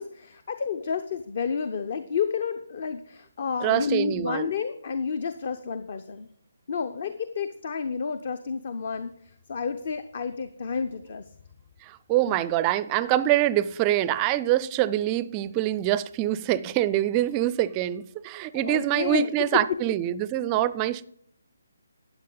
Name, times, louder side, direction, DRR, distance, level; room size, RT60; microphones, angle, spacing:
voice 1, 0.0-6.3 6.7-11.2 12.3-12.4 18.5-19.3 19.5-19.8, left 6 dB, 45° left, 0.6 m, -30 dB
voice 2, 3.6-4.5 11.8-21.0, right 13 dB, 20° right, 0.4 m, -25 dB
12.5 x 9.1 x 3.9 m
figure-of-eight pair, 140°, 0 cm